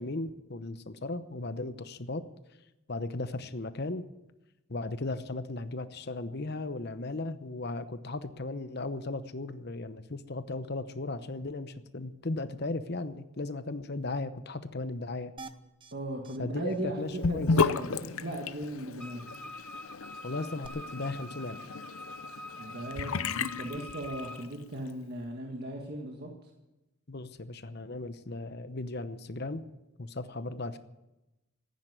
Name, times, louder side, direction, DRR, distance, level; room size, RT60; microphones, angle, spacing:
voice 1, 0.0-2.2 2.9-4.0 4.7-15.3 16.4-17.5 20.2-21.6 27.1-29.6 30.0-30.8, left 2 dB, 50° left, 11 dB, 0.9 m, -36 dB
sound 1, 15.4-15.9 16.2-16.4 16.7-16.8 17.1-17.2 20.6-20.7, right 4 dB, 25° right, 0.7 m, -46 dB
voice 2, 15.9-19.2 22.6-26.3, right 1 dB, 45° right, 1 dB, 1.7 m, -37 dB
Sink (filling or washing) / Bathtub (filling or washing), 17.2-24.5, left 4 dB, 75° left, 0.7 m, -33 dB
Wind instrument woodwind instrument, 19.0-24.5, left 1 dB, 5° left, 1.1 m, -45 dB
15.0 x 9.5 x 9.4 m, 0.99 s
head